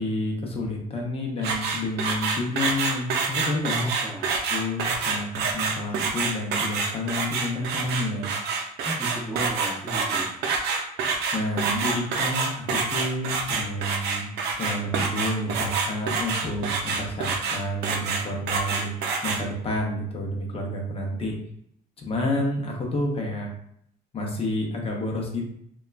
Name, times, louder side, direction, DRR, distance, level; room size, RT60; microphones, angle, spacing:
voice 1, 0.0-3.7 4.5-8.3 11.3-14.3 14.6-19.0 19.2-21.3 22.0-23.5 24.1-25.4, left 1 dB, 35° left, 0 dB, 0.7 m, -29 dB
sound 1, 1.4-19.4, right 4 dB, 75° right, 0.5 m, -27 dB
voice 2, 3.7-4.4 8.8-10.5, equal, 5° right, -7 dB, 0.6 m, -33 dB
2.9 x 2.3 x 2.3 m, 0.70 s
cardioid pair, 110°, 17 cm